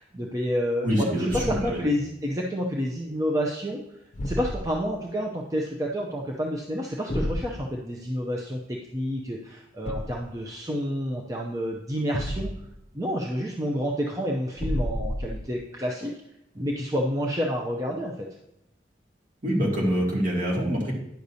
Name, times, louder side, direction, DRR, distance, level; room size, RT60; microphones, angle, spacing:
voice 1, 0.0-3.8 4.2-12.5 12.9-16.1 16.5-18.3, equal, 20° right, -1 dB, 0.6 m, -29 dB
voice 2, 0.8-1.8 19.4-20.9, equal, 50° right, -3 dB, 2.3 m, -25 dB
Thump thud, 1.3-1.8 4.1-4.9 7.1-7.5 9.8-10.3 12.1-12.8 14.6-15.5, equal, 40° left, 0.7 m, -30 dB
10.5 x 6.5 x 2.8 m, 0.82 s
head